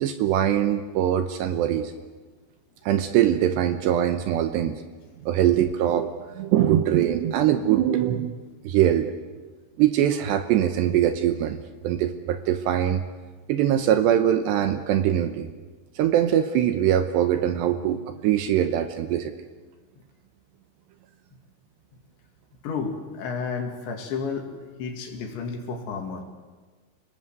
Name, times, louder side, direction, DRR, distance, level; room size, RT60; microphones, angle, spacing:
voice 1, 0.0-1.9 2.9-4.8 5.2-8.3 8.6-9.1 9.8-13.0 13.5-15.5 16.0-19.3, right 11 dB, 75° right, 9 dB, 2.8 m, -22 dB
voice 2, 22.6-24.5 24.8-26.2, left 5 dB, 65° left, 3 dB, 4.7 m, -31 dB
29.0 x 19.0 x 8.1 m, 1.3 s
omnidirectional pair, 5.7 m